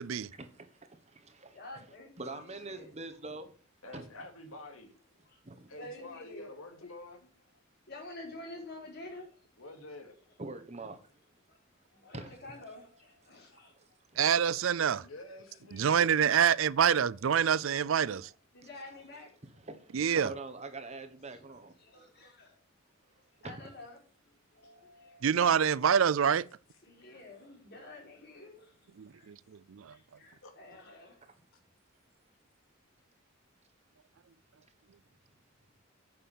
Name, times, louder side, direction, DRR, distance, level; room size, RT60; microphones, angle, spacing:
voice 1, 0.3-3.5 3.9-4.1 5.4-5.7 10.4-11.1 12.1-12.7 13.5-14.2 18.6-21.7 23.4-23.6 31.2-31.4, right 2 dB, 30° right, 1.3 m, -45 dB
voice 2, 1.5-2.9 5.8-6.5 7.9-9.3 11.9-13.7 18.5-19.3 21.9-22.5 23.4-23.9 24.5-25.2 26.8-28.7 29.1-29.2 29.9-31.2, left 2 dB, 50° left, 4.6 m, -48 dB
voice 3, 3.8-4.9 5.7-7.2 9.6-10.2 14.8-16.1 30.4-30.5, left 2 dB, 90° left, 2.6 m, -48 dB
voice 4, 14.2-15.0 15.7-18.3 19.9-20.3 25.2-26.5 29.0-29.4 29.7-29.9, right 8 dB, 70° right, 0.4 m, -26 dB
9.1 x 6.7 x 7.4 m
head